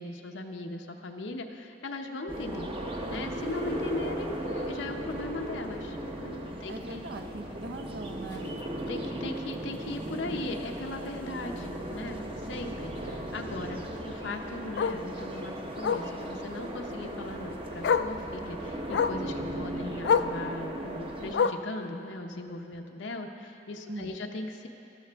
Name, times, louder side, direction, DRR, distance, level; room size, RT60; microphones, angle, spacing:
voice 1, 0.0-2.7 3.1-7.0 8.4-24.7, left 2 dB, 85° left, 3 dB, 0.7 m, -39 dB
sound 1, 2.3-21.3, right 1 dB, 30° right, 0.9 m, -37 dB
voice 2, 6.7-8.5 23.9-24.2, right 2 dB, 60° right, 5 dB, 0.8 m, -40 dB
Bark, 8.3-8.5 8.9-9.0 9.4-9.5 9.7-9.8 11.2-11.3 13.8-13.9 14.8-15.0 15.8-16.1 17.3-17.4 17.8-18.2 18.9-19.2 20.0-20.4 21.3-21.7 22.7-22.8, left 6 dB, 65° left, 0.3 m, -27 dB
13.5 x 13.0 x 3.5 m, 2.9 s
head